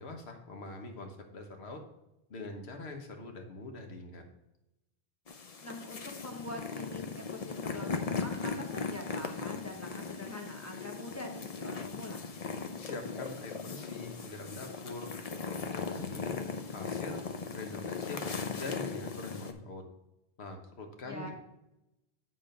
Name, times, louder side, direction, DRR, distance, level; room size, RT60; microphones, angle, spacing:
voice 1, 0.0-1.8 2.3-4.3 12.8-15.1 15.4-16.3 16.7-17.2 17.5-18.2 18.6-19.8 20.4-21.3, left 2 dB, 70° left, 4 dB, 1.4 m, -43 dB
sound 1, 5.3-19.5, left 5 dB, 45° left, 0.6 m, -38 dB
voice 2, 5.6-12.2 21.0-21.3, left 1 dB, 15° left, 1 dB, 1.1 m, -44 dB
9.0 x 3.8 x 5.1 m, 0.92 s
omnidirectional pair, 1.1 m